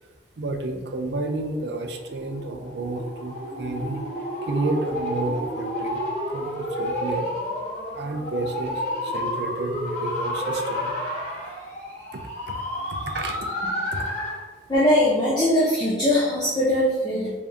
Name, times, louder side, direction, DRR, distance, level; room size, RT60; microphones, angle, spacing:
voice 1, 0.4-4.0 4.4-7.3 7.9-10.9 11.4-11.5 12.1-12.2 12.5-12.6 12.9-13.4 13.9-14.0, right 2 dB, 65° right, 5 dB, 0.4 m, -31 dB
sound 1, 1.8-14.5, left 1 dB, 40° left, 1.1 m, -30 dB
voice 2, 14.7-17.4, left 1 dB, 20° left, -8 dB, 0.5 m, -21 dB
3.4 x 2.7 x 3.5 m, 1.3 s
head